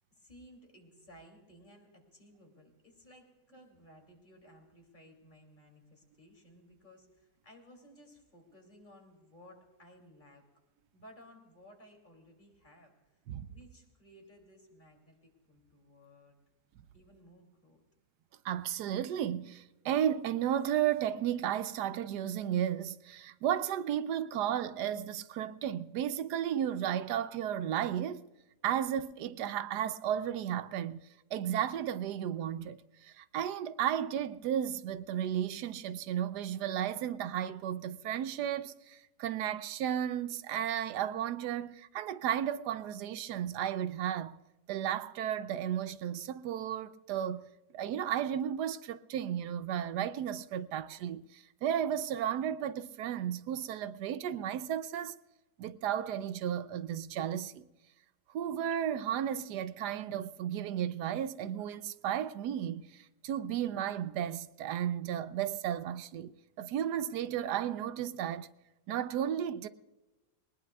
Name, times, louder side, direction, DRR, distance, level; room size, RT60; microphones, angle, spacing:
voice 1, 0.1-10.4 10.9-12.9 13.5-16.4 16.9-17.8, equal, 30° left, 3.0 m, -58 dB
voice 2, 18.4-28.3 28.6-31.0 31.3-44.4 44.7-55.2 55.6-57.6 58.3-66.3 66.6-68.5 68.9-69.7, right 10 dB, 80° right, 1.2 m, -34 dB
20.5 x 19.5 x 2.3 m
omnidirectional pair, 1.8 m